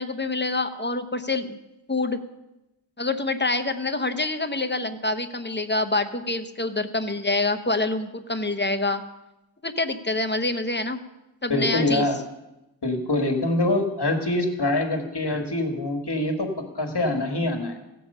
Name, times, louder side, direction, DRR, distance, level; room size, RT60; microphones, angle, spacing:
voice 1, 0.0-1.6 1.9-2.2 3.0-9.0 9.6-11.0 11.4-12.1, left 2 dB, 25° left, 9 dB, 0.9 m, -26 dB
voice 2, 11.5-12.2 12.8-17.8, left 2 dB, 60° left, 4 dB, 1.8 m, -24 dB
16.0 x 7.9 x 5.5 m, 0.96 s
wide cardioid pair, 50°, 45 cm